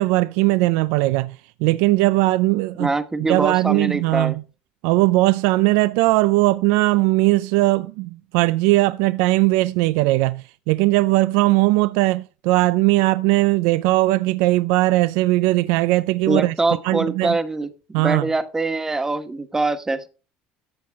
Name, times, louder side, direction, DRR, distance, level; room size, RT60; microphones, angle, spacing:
voice 1, 0.0-1.3 1.6-2.9 3.3-4.3 4.8-16.5 16.8-17.4 17.9-18.2, right 19 dB, 80° right, 0.4 m, -19 dB
voice 2, 2.8-4.4 16.3-20.1, right 3 dB, 15° right, 1.3 m, -23 dB
14.0 x 7.6 x 3.6 m
cardioid pair, 120°, 4 cm